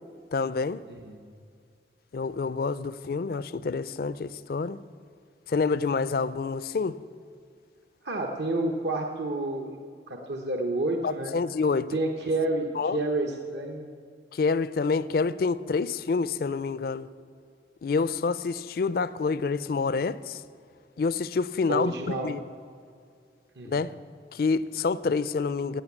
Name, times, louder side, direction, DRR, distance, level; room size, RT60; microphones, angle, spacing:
voice 1, 0.3-0.8 2.1-4.8 5.5-7.0 11.0-11.9 12.8-13.0 14.3-17.1 17.8-20.4 21.0-21.9 22.2-22.4 23.6-23.9 24.3-25.8, left 4 dB, 55° left, 0.4 m, -27 dB
voice 2, 0.9-1.3 8.0-9.8 10.1-11.4 11.9-13.9 21.7-22.3 23.6-23.8, right 2 dB, 75° right, 0.9 m, -30 dB
17.5 x 6.8 x 7.2 m
head